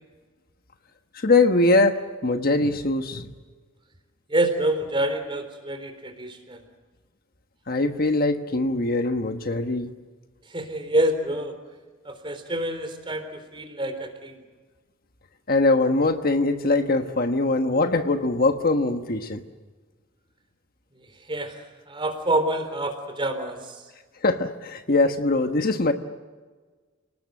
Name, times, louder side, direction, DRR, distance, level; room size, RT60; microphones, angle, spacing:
voice 1, 1.1-3.3 7.7-9.9 15.5-19.4 24.2-25.9, left 2 dB, 45° left, 7 dB, 1.3 m, -22 dB
voice 2, 4.3-6.6 10.5-11.6 12.0-14.3 21.3-21.6 21.9-23.8, right 1 dB, 25° right, 7 dB, 3.9 m, -27 dB
30.0 x 19.0 x 7.8 m, 1.4 s
head